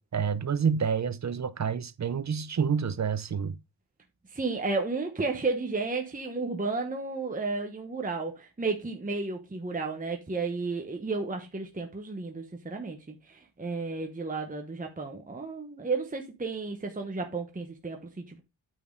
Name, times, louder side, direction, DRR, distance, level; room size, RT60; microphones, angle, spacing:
voice 1, 0.1-3.6, right 6 dB, 35° right, 0.6 m, -28 dB
voice 2, 4.3-18.4, right 3 dB, 15° right, 1.0 m, -33 dB
9.2 x 6.2 x 3.7 m
wide cardioid pair, 160°, 47 cm